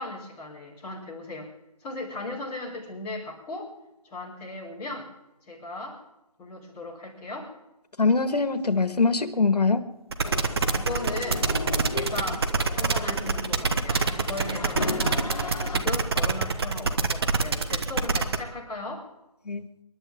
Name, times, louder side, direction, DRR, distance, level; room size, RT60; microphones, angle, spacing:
voice 1, 0.0-1.5 1.8-3.7 4.0-5.1 5.5-6.0 6.4-7.5 10.7-11.5 11.9-15.1 15.6-19.1, left 2 dB, 10° left, -6 dB, 4.1 m, -37 dB
voice 2, 8.0-9.8 19.5-19.6, left 4 dB, 85° left, 11 dB, 1.9 m, -23 dB
sound 1, 10.1-18.4, right 4 dB, 40° right, 1.3 m, -25 dB
sound 2, 10.2-15.8, left 3 dB, 55° left, 2.8 m, -35 dB
28.5 x 12.0 x 3.7 m, 0.94 s
figure-of-eight pair, 165°, 20 cm